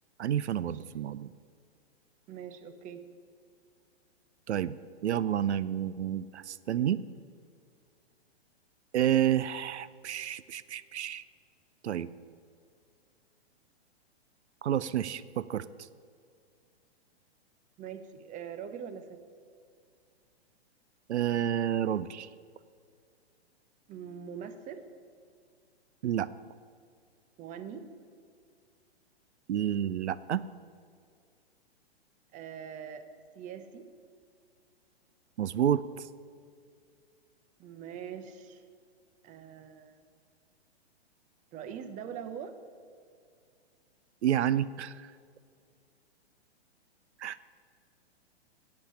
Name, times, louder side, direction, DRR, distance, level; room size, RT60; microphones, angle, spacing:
voice 1, 0.2-1.3 4.5-4.7 5.0-7.0 8.9-11.2 11.8-12.1 14.6-15.7 21.1-22.3 26.0-26.3 29.5-30.4 35.4-36.1 44.2-45.1 47.2-47.4, right 10 dB, 85° right, 17 dB, 0.5 m, -29 dB
voice 2, 2.3-3.0 17.8-19.2 23.9-24.8 27.4-27.9 32.3-33.1 33.4-33.9 37.6-38.6 39.2-39.9 41.5-42.6, right 8 dB, 25° right, 10 dB, 0.8 m, -42 dB
8.7 x 8.1 x 8.5 m, 2.2 s
hypercardioid pair, 125°, 33 cm